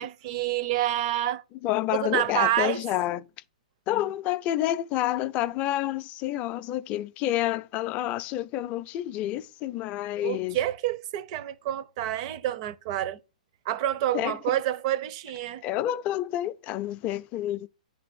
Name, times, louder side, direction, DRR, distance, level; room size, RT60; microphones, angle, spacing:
voice 1, 0.0-1.4 1.9-2.8 10.2-13.2 13.7-15.6, right 12 dB, 45° right, 0.7 m, -28 dB
voice 2, 1.6-3.3 3.9-10.6 14.1-14.4 15.6-17.7, left 13 dB, 30° left, 0.4 m, -29 dB
10.0 x 3.4 x 6.0 m
hypercardioid pair, 125°, 4 cm